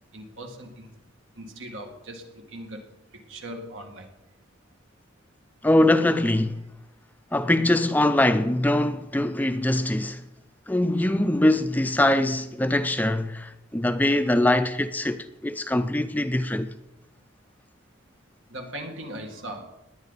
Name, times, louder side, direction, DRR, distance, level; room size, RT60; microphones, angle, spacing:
voice 1, 0.1-0.9 1.4-2.8 3.3-4.1 18.5-19.7, right 1 dB, 80° right, 2.1 m, -39 dB
voice 2, 5.6-6.6 7.3-10.2 10.7-16.7, left 1 dB, 10° left, 0.4 m, -22 dB
19.0 x 10.5 x 4.1 m
head